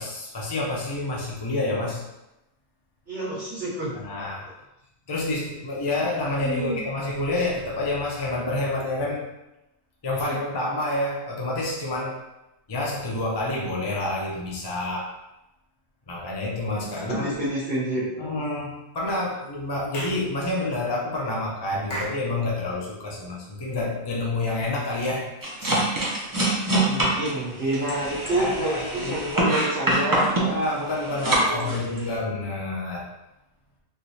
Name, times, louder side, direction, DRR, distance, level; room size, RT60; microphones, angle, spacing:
voice 1, 0.0-2.0 3.9-4.5 5.1-9.3 10.0-12.3 12.7-15.1 16.1-17.3 18.2-25.9 28.1-29.6 30.4-33.1, left 2 dB, 35° left, -3 dB, 0.4 m, -28 dB
voice 2, 3.1-3.9 6.4-6.8 16.7-18.0 26.7-30.5 31.4-31.7, right 1 dB, 65° right, -9 dB, 1.4 m, -28 dB
Clapping / Chirp tweet, 19.9-20.3 21.9-22.2, right 1 dB, 65° left, 1.1 m, -33 dB
sound 1, 25.4-32.2, right 2 dB, 25° right, 0.5 m, -25 dB
3.3 x 3.0 x 2.7 m, 0.91 s
omnidirectional pair, 1.2 m